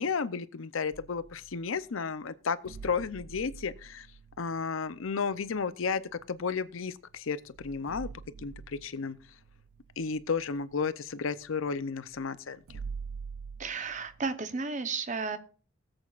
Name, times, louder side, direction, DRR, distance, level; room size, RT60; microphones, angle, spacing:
voice 1, 0.0-4.1 4.4-8.1 8.4-9.2 10.0-12.6, left 5 dB, 75° left, 0.6 m, -33 dB
sound 1, 0.9-1.8 2.7-6.6 7.1-7.2 7.5-14.4, right 5 dB, 85° right, 0.4 m, -46 dB
voice 2, 13.6-15.4, right 4 dB, 35° right, 0.8 m, -33 dB
20.5 x 7.9 x 2.4 m
head